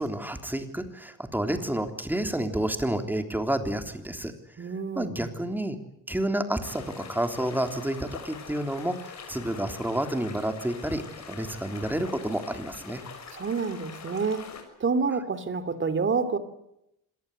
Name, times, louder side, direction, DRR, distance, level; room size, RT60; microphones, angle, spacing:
voice 1, 0.0-4.3 5.0-5.8 6.1-13.0, right 1 dB, 5° right, 7 dB, 3.5 m, -30 dB
voice 2, 4.6-5.3 13.3-14.5 14.8-16.4, right 4 dB, 35° right, 13 dB, 3.0 m, -28 dB
sound 1, 6.6-14.6, left 6 dB, 50° left, 6.6 m, -44 dB
26.0 x 19.0 x 8.0 m, 0.83 s
cardioid pair, 110°, 34 cm